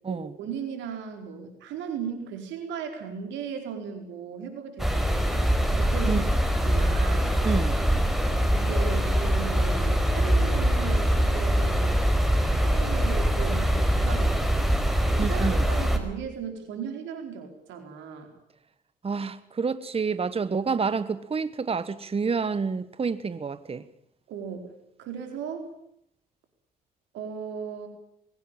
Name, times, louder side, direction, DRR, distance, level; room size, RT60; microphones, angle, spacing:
voice 1, 0.1-6.3 6.6-7.3 8.5-12.0 12.6-14.7 15.2-18.3 24.3-24.7 25.0-25.7 27.1-27.9, right 7 dB, 70° right, 4.5 m, -37 dB
sound 1, 4.8-16.0, equal, ahead, 4.8 m, -23 dB
voice 2, 7.4-7.8 15.2-15.6 19.0-23.8, right 5 dB, 30° right, 1.3 m, -28 dB
21.5 x 17.5 x 10.0 m
hypercardioid pair, 55°, 20 cm